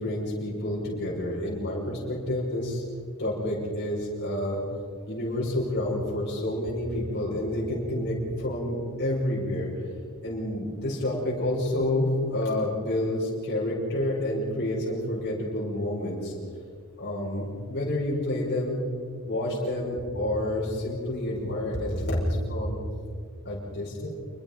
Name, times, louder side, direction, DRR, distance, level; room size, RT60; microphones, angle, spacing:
voice 1, 0.0-2.8 3.2-4.6 5.1-9.7 10.2-16.3 17.0-18.8 19.2-22.8 23.4-24.1, left 1 dB, 50° left, -5 dB, 5.7 m, -29 dB
28.0 x 21.5 x 5.4 m, 2.1 s
head